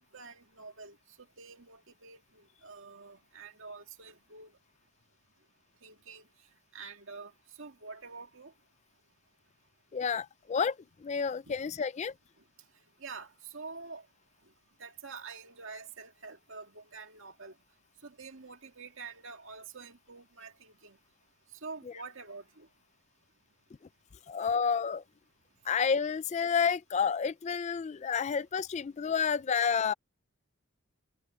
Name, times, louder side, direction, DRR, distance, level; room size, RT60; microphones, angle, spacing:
voice 1, 0.1-1.0 1.4-4.5 5.8-6.3 6.7-7.3 7.6-8.5 11.5-11.6 13.0-14.1 14.8-17.5 18.0-21.0 21.6-22.7, right 4 dB, 60° right, 2.3 m, -47 dB
voice 2, 9.9-10.8 11.0-12.1 24.3-25.0 25.7-29.9, left 6 dB, 30° left, 0.3 m, -30 dB
head